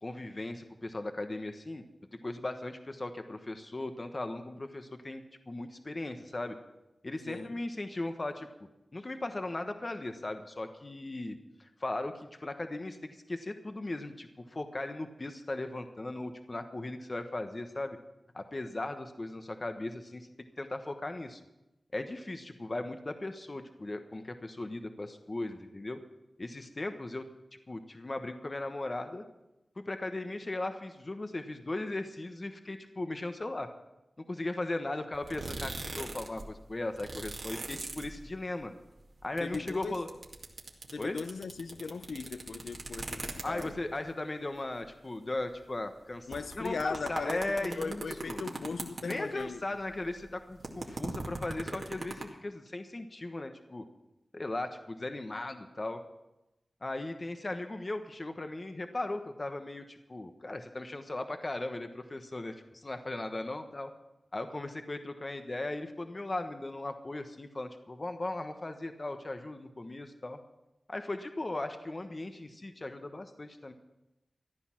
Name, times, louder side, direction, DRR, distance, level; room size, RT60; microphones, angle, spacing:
voice 1, 0.0-1.8 2.2-6.6 7.0-8.5 8.9-18.0 18.3-20.3 20.6-21.4 21.9-26.0 26.4-27.3 27.7-29.2 29.8-33.7 34.2-38.7 39.2-40.1 41.0-41.2 43.4-48.4 49.0-53.8 54.3-56.0 56.8-63.9 64.3-70.4 70.9-73.7, left 2 dB, 40° left, 1.1 m, -37 dB
voice 2, 7.3-7.6 39.4-40.0 40.9-43.8 46.3-49.6, left 4 dB, 90° left, 0.6 m, -38 dB
sound 1, 35.1-36.5 36.7-38.6 38.9-43.9 44.5-44.6 44.8-44.9 45.6-45.7 46.1-49.5 49.8-52.2, right 3 dB, 70° right, 2.1 m, -40 dB
14.5 x 11.0 x 6.0 m
wide cardioid pair, 60°, 0 cm